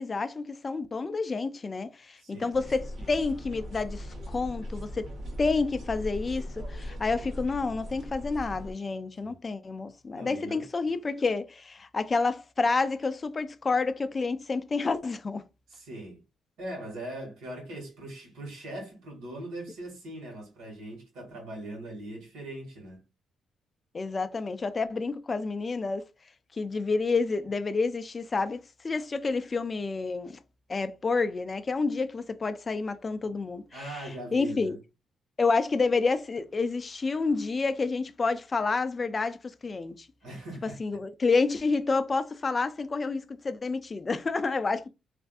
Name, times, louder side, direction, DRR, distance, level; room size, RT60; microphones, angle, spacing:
voice 1, 0.0-5.1 5.4-15.4 23.9-26.1 26.5-30.4 30.7-34.8 35.4-40.1 40.8-44.9, left 4 dB, 30° left, 0.4 m, -29 dB
voice 2, 2.2-2.5 9.2-9.3 10.1-10.7 15.7-16.2 16.6-23.0 33.7-34.8 40.2-41.0, right 1 dB, 85° right, 1.5 m, -41 dB
sound 1, 2.5-8.7, equal, 65° right, 1.5 m, -39 dB
3.3 x 2.5 x 2.3 m
cardioid pair, 90°, 0 cm